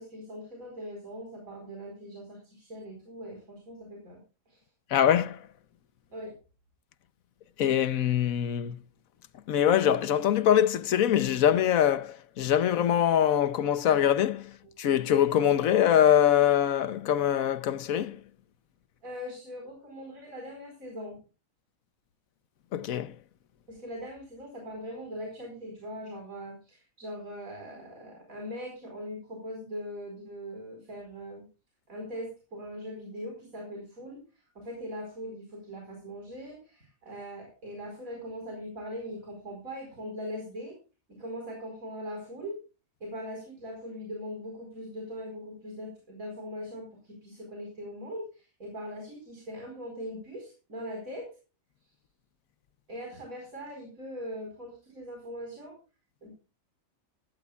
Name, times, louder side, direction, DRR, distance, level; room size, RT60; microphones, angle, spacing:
voice 1, 0.0-4.2 4.5-4.6 6.1-6.3 19.0-21.2 23.7-31.5 31.9-34.2 34.5-40.8 41.1-42.6 43.0-51.3 52.9-55.8 56.2-56.3, equal, 85° right, 5.0 m, -41 dB
voice 2, 4.9-5.4 7.6-8.8 9.5-14.5 14.8-18.2 22.7-23.1, left 10 dB, 85° left, 1.2 m, -23 dB
16.0 x 15.5 x 2.3 m
omnidirectional pair, 1.4 m